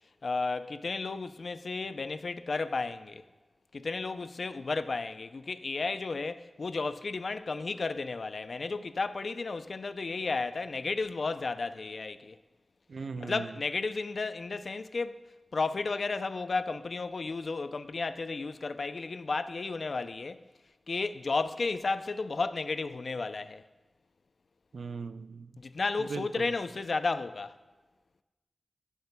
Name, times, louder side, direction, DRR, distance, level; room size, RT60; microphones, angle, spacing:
voice 1, 0.2-3.2 3.7-12.4 13.2-15.2 15.5-20.4 20.9-23.6 25.6-27.5, left 3 dB, 65° left, 0.4 m, -33 dB
voice 2, 12.9-13.5 24.7-25.5 26.1-26.5, right 4 dB, 90° right, 0.3 m, -38 dB
17.5 x 8.1 x 2.2 m
wide cardioid pair, 90°, 0 cm